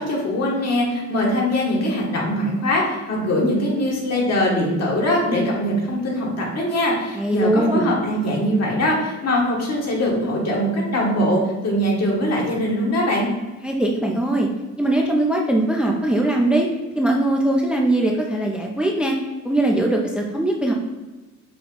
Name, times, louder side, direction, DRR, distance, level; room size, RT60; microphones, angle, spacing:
voice 1, 0.0-13.3, equal, 55° left, -2 dB, 1.4 m, -22 dB
voice 2, 7.1-7.9 13.6-14.5 14.8-16.7 16.9-19.1 19.4-20.7, right 1 dB, 5° right, 0 dB, 0.5 m, -20 dB
5.3 x 2.2 x 3.8 m, 1.2 s
cardioid pair, 90°, 30 cm